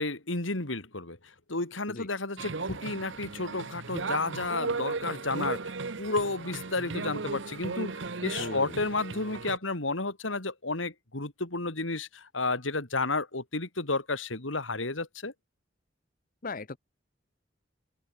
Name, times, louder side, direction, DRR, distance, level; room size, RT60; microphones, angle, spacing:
voice 1, 0.0-15.3, left 3 dB, 90° left, 3.6 m, -32 dB
sound 1, 2.4-9.6, right 4 dB, 70° right, 1.0 m, -36 dB
voice 2, 8.4-8.8 16.4-16.8, left 3 dB, 45° left, 0.9 m, -38 dB
open air
head